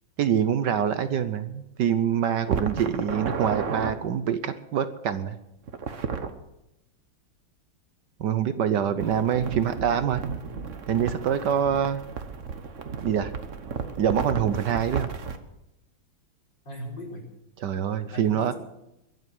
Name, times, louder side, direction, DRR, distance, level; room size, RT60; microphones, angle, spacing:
voice 1, 0.2-5.3 8.2-10.2 10.9-12.0 13.0-13.3 14.0-15.1 17.6-18.5, right 8 dB, 65° right, 11 dB, 1.3 m, -25 dB
sound 1, 2.5-3.9 5.7-6.3 9.0-15.4, right 6 dB, 45° right, 1.3 m, -33 dB
voice 2, 8.7-9.7 16.7-17.3 18.1-18.5, equal, 65° left, -2 dB, 5.7 m, -39 dB
22.5 x 8.0 x 7.7 m, 0.89 s
omnidirectional pair, 2.2 m